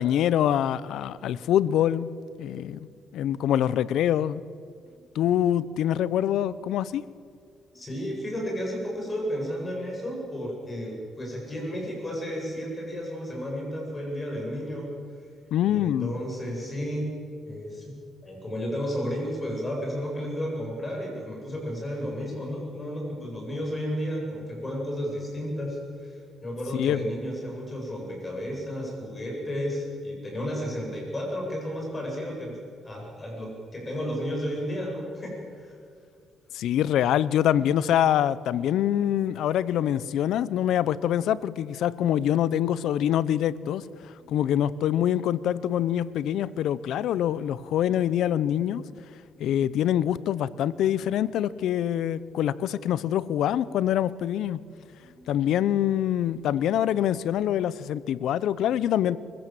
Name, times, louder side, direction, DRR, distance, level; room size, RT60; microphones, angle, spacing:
voice 1, 0.0-2.1 2.4-2.9 3.1-4.4 5.1-7.0 15.5-16.1 26.7-27.1 36.5-48.8 49.4-54.6 55.3-59.2, left 11 dB, 80° left, 19 dB, 0.6 m, -25 dB
voice 2, 7.7-14.9 15.7-17.1 17.5-17.9 18.2-32.5 32.8-35.8 55.0-55.3, equal, 25° left, -1 dB, 7.9 m, -33 dB
23.5 x 15.5 x 7.6 m, 2.2 s
cardioid pair, 90°, 0 cm